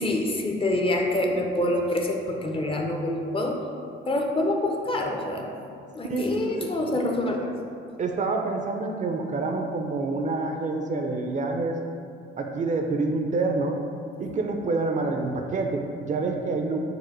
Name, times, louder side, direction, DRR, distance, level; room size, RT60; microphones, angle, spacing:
voice 1, 0.0-3.7 4.0-5.7 5.9-7.5, left 1 dB, 25° left, 2 dB, 0.5 m, -26 dB
voice 2, 6.0-6.7 8.0-11.8 12.4-13.8 14.2-16.8, right 3 dB, 40° right, 3 dB, 0.4 m, -27 dB
4.8 x 2.1 x 4.6 m, 2.4 s
cardioid pair, 90°, 20 cm